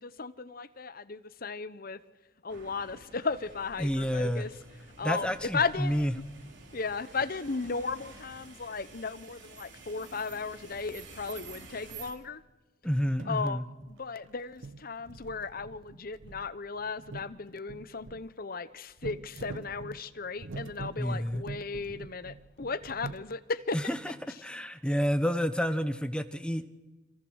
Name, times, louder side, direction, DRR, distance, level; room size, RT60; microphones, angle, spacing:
voice 1, 0.0-2.0 2.4-4.5 5.0-6.2 6.7-12.4 13.2-23.9, left 4 dB, 50° left, 0.9 m, -35 dB
sound 1, 2.5-12.1, right 4 dB, 65° right, 4.4 m, -50 dB
voice 2, 3.8-4.5 5.0-6.1 12.8-13.6 21.0-21.4 23.7-24.1 24.4-26.6, equal, 5° left, 1.0 m, -29 dB
sound 2, 12.8-13.4 13.8-14.3 14.6-18.3 19.0-23.2, right 3 dB, 80° right, 1.0 m, -45 dB
29.5 x 26.0 x 6.4 m
head